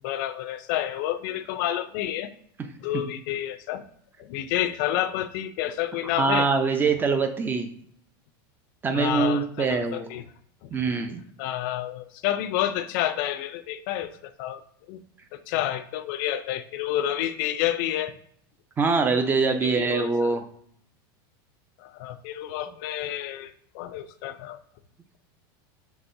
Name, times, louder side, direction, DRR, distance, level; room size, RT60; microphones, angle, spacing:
voice 1, 0.0-2.3 2.8-3.8 4.2-6.5 8.9-10.2 10.6-10.7 11.4-14.1 14.4-14.6 14.9-15.0 15.3-18.1 19.6-20.3 21.8-24.6, left 12 dB, 60° left, 11 dB, 0.5 m, -29 dB
voice 2, 6.2-7.7 8.8-10.1 10.7-11.2 18.8-20.4, right 4 dB, 15° right, 7 dB, 0.5 m, -23 dB
6.0 x 3.3 x 2.6 m, 0.64 s
supercardioid pair, 140°, 12 cm